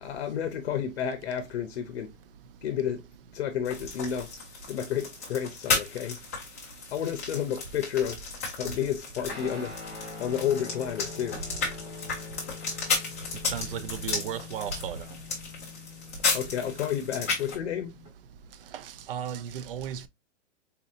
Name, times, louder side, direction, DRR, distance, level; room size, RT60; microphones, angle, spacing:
voice 1, 0.0-2.1 2.6-3.0 3.3-4.3 4.7-6.2 6.9-8.2 8.6-9.7 10.2-11.4 16.3-17.9, left 9 dB, 55° left, 0.7 m, -31 dB
sound 1, 3.6-17.5, left 4 dB, 15° left, 0.4 m, -34 dB
Guitar, 9.3-18.1, left 5 dB, 10° right, 0.8 m, -44 dB
voice 2, 13.5-15.0 18.7-20.1, right 8 dB, 50° right, 0.4 m, -35 dB
3.9 x 2.7 x 2.4 m
hypercardioid pair, 170°, 38 cm